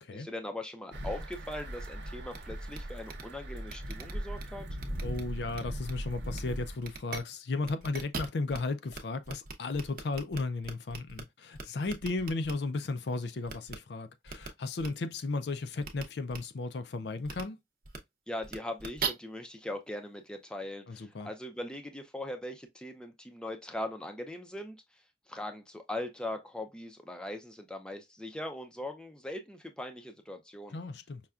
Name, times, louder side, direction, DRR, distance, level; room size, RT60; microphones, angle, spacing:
voice 1, 0.1-4.7 18.3-24.8 25.3-30.8, left 1 dB, 5° left, 0.5 m, -40 dB
sound 1, 0.9-6.8, equal, 85° right, 0.9 m, -39 dB
sound 2, 2.3-2.4 2.7-2.8 3.1-3.2 3.7-4.4 4.8-5.2 5.5-5.9 6.3-6.4 6.8-7.2 7.6-8.6 8.9-9.0 9.3-11.2 11.5-12.5 13.5-13.8 14.3-14.5 14.8-14.9 15.8-16.0 16.3-16.4 17.2-17.4 17.8-18.0 18.4-19.1, right 5 dB, 50° right, 0.7 m, -39 dB
voice 2, 5.0-17.6 20.9-21.3 30.7-31.2, left 3 dB, 70° left, 0.5 m, -35 dB
5.6 x 2.2 x 2.4 m
head